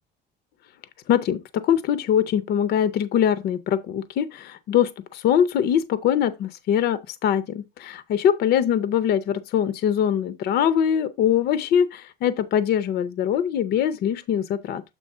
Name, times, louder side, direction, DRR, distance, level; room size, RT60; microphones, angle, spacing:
voice 1, 1.1-14.8, left 9 dB, 55° left, 0.6 m, -22 dB
7.7 x 3.2 x 5.4 m
cardioid pair, 150°, 19 cm